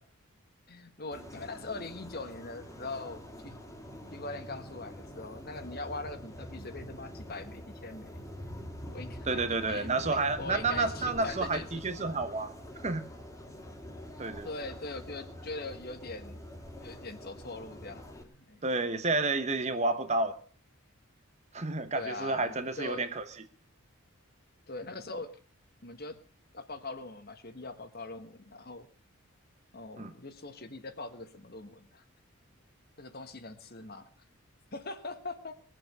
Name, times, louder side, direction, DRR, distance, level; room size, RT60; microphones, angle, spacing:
voice 1, 0.7-3.6 4.1-8.2 8.9-11.8 14.4-16.4 16.8-18.6 21.9-23.1 24.7-25.4 25.8-26.2 26.5-28.9 29.7-32.0 33.0-34.1 34.7-35.5, left 3 dB, 45° left, 1.5 m, -42 dB
sound 1, 1.1-18.2, equal, 15° left, 2.3 m, -45 dB
voice 2, 9.3-12.5 12.8-13.1 14.2-14.5 18.6-20.4 21.5-23.2 30.0-30.1, right 3 dB, 30° right, 0.9 m, -30 dB
21.5 x 7.9 x 6.6 m
head